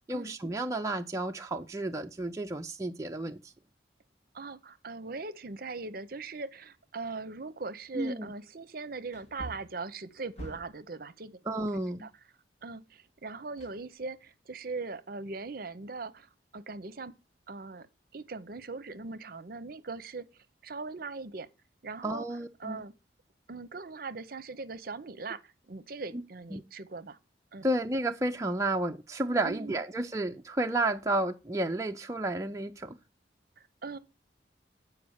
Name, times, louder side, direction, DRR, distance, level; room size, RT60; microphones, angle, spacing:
voice 1, 0.1-3.5 8.0-8.3 11.5-12.1 22.0-22.8 26.5-26.6 27.6-33.0, right 2 dB, 15° right, 0.4 m, -31 dB
voice 2, 4.3-11.4 12.0-12.1 12.6-17.1 17.5-17.9 18.1-21.5 21.8-22.3 22.6-22.9 23.5-27.2 27.5-27.7 29.4-29.8 33.6-34.0, right 3 dB, 55° right, 0.7 m, -40 dB
Wood, 7.8-7.9 9.1-10.9 13.6-14.4 14.7-14.8, right 1 dB, 40° left, 1.8 m, -46 dB
8.4 x 5.0 x 6.4 m
head